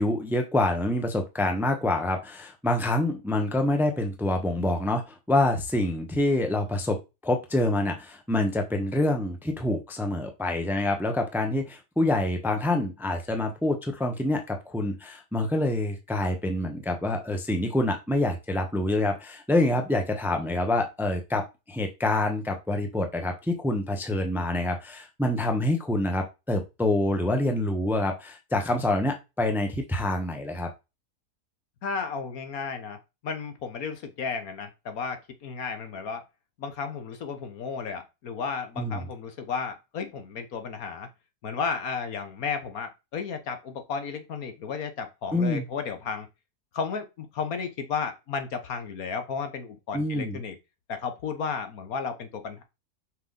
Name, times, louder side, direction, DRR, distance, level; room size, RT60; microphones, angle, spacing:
voice 1, 0.0-7.0 7.2-30.7 38.8-39.0 45.3-45.7 49.9-50.4, left 1 dB, ahead, 5 dB, 0.9 m, -26 dB
voice 2, 31.8-36.2 36.6-41.1 41.4-46.3 46.7-50.6 50.9-52.6, left 5 dB, 65° left, 8 dB, 1.5 m, -33 dB
5.9 x 5.5 x 4.0 m, 0.25 s
omnidirectional pair, 1.7 m